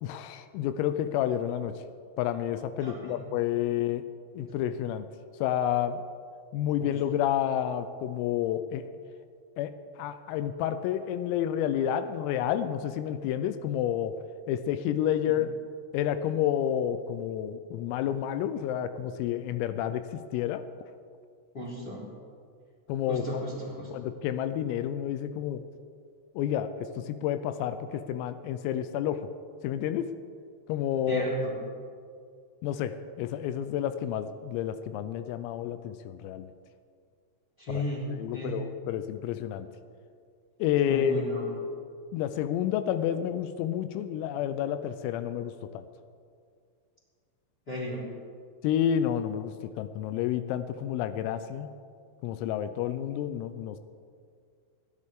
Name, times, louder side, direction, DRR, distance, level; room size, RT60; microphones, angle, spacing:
voice 1, 0.0-1.8 2.2-4.0 4.4-5.1 5.4-6.0 6.5-8.8 9.6-14.2 14.5-15.5 15.9-20.7 22.9-23.4 23.9-25.6 26.4-29.3 29.6-30.1 30.7-31.3 32.6-36.5 37.7-37.8 38.1-39.7 40.6-41.3 42.1-45.8 48.6-51.7 52.2-53.8, left 10 dB, 85° left, 10 dB, 3.3 m, -30 dB
voice 2, 2.8-3.2 6.8-6.9 15.3-15.4 21.5-22.0 23.1-23.9 31.1-31.6 37.6-38.6 40.8-41.5 47.7-48.1, equal, 25° left, -6 dB, 3.1 m, -34 dB
30.0 x 10.5 x 3.7 m, 2.2 s
omnidirectional pair, 6.0 m